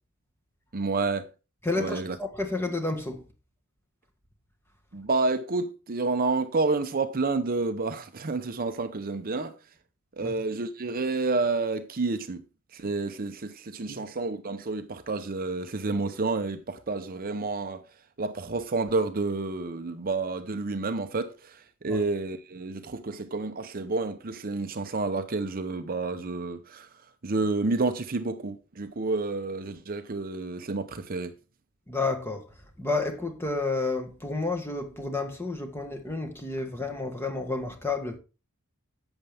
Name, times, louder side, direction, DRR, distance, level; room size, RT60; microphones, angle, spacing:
voice 1, 0.7-1.3 1.8-2.2 4.9-9.5 10.2-12.4 12.7-17.8 18.2-26.9 27.2-31.3, right 3 dB, 40° right, 0.7 m, -29 dB
voice 2, 1.6-3.2 10.2-10.3 13.9-14.0 21.8-22.0 31.9-32.5 32.8-38.2, left 3 dB, 10° left, 1.6 m, -30 dB
11.0 x 8.0 x 3.4 m
head